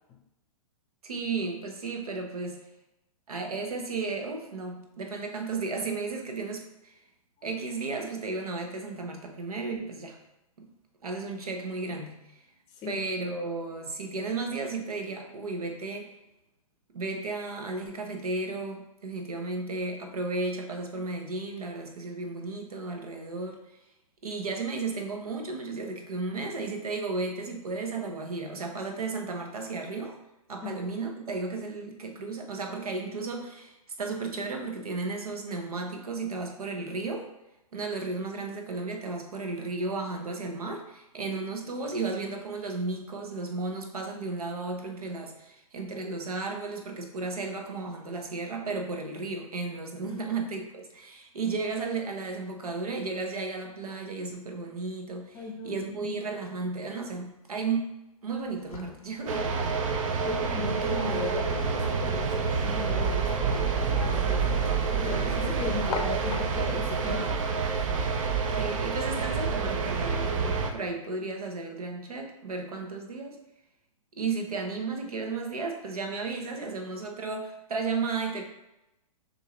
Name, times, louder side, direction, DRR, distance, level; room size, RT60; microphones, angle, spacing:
voice 1, 1.0-2.6 3.3-7.0 7.4-10.2 10.6-10.7 11.0-12.2 12.9-16.1 16.9-23.6 24.2-30.2 30.5-37.3 37.7-57.9 58.2-59.5 68.6-73.4 74.2-78.5, right 3 dB, 80° right, 3 dB, 1.0 m, -34 dB
voice 2, 12.7-13.0 30.6-30.9 50.1-50.2 55.3-56.1 60.2-67.4, left 4 dB, 20° left, 1 dB, 0.6 m, -37 dB
sound 1, 58.4-66.9, left 4 dB, 85° left, 0.7 m, -44 dB
sound 2, 59.3-70.7, right 5 dB, 60° right, 0.6 m, -28 dB
6.3 x 2.7 x 3.0 m, 0.92 s
hypercardioid pair, 125°, 19 cm